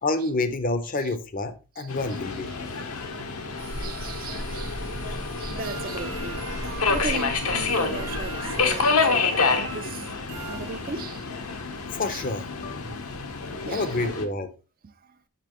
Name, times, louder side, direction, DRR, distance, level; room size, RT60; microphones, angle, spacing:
voice 1, 0.0-2.5 11.9-13.0 13.7-14.5, left 2 dB, 40° left, 0.6 m, -28 dB
Subway metro underground, 1.9-14.3, left 4 dB, 75° left, 0.9 m, -28 dB
voice 2, 2.5-3.0 3.8-4.9 5.4-10.1 10.5-11.3 12.1-12.2 13.6-14.2 14.8-15.2, right 4 dB, 40° right, 0.5 m, -38 dB
sound 1, 3.6-8.8, equal, 80° right, 1.2 m, -37 dB
sound 2, 5.6-11.3, right 4 dB, 60° right, 1.2 m, -40 dB
6.8 x 5.7 x 3.0 m
head